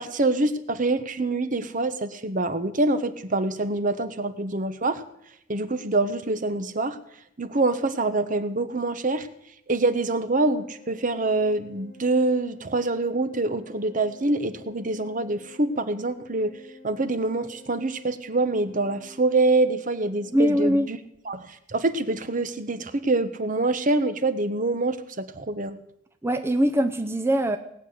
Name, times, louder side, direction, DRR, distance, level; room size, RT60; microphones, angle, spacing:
voice 1, 0.0-5.0 5.5-7.0 7.4-9.3 9.7-16.6 16.8-21.0 21.3-25.8, right 2 dB, 45° right, 11 dB, 1.0 m, -25 dB
Organ, 10.2-21.0, left 2 dB, 80° right, 2.9 m, -50 dB
voice 2, 20.3-20.9 26.2-27.6, equal, 15° right, 7 dB, 0.6 m, -22 dB
18.5 x 6.6 x 9.4 m, 0.77 s
head